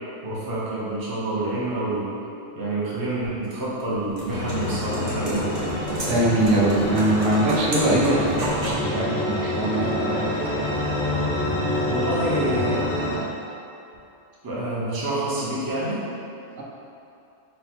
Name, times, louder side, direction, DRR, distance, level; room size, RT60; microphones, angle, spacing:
voice 1, 0.2-2.1 2.6-5.7 8.2-8.4 11.8-12.9 14.4-16.0, right 2 dB, 25° right, -8 dB, 0.6 m, -27 dB
sound 1, 3.6-8.9, right 1 dB, 70° right, 1.2 m, -33 dB
sound 2, 4.3-13.2, left 1 dB, 50° left, 0.8 m, -27 dB
voice 2, 6.1-10.6, right 1 dB, 90° right, -4 dB, 1.1 m, -22 dB
4.1 x 2.1 x 4.2 m, 2.7 s
omnidirectional pair, 1.3 m